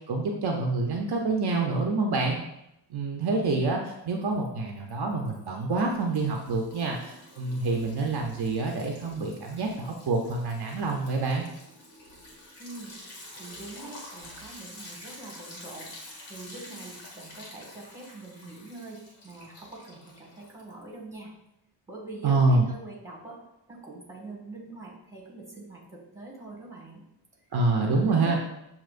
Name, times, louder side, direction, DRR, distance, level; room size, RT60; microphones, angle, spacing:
voice 1, 0.1-2.4 2.9-11.5 22.2-22.7 27.5-28.4, right 3 dB, 55° right, 0 dB, 0.7 m, -27 dB
Liquid, 3.9-4.5 4.8-21.0, left 1 dB, 80° left, 1.6 m, -48 dB
voice 2, 12.6-13.0 13.3-15.9 16.3-21.3 21.9-23.4 23.7-27.0 27.8-28.3, right 2 dB, 5° right, -3 dB, 1.6 m, -43 dB
7.4 x 2.9 x 2.5 m, 0.83 s
wide cardioid pair, 100°, 45 cm